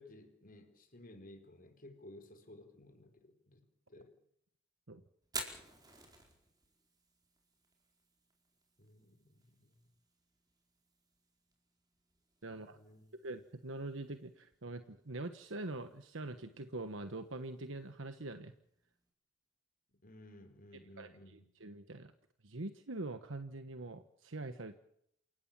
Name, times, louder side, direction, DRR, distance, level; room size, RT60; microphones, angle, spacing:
voice 1, 0.0-4.2 8.8-9.8 12.5-13.1 20.0-21.5, left 1 dB, 45° left, 7 dB, 4.3 m, -57 dB
Fire, 5.2-19.1, right 3 dB, 20° right, 4.6 m, -54 dB
voice 2, 12.4-12.8 13.2-18.5 21.0-22.1 22.4-24.7, right 2 dB, 75° right, 9 dB, 1.3 m, -44 dB
28.5 x 16.5 x 7.4 m, 0.71 s
head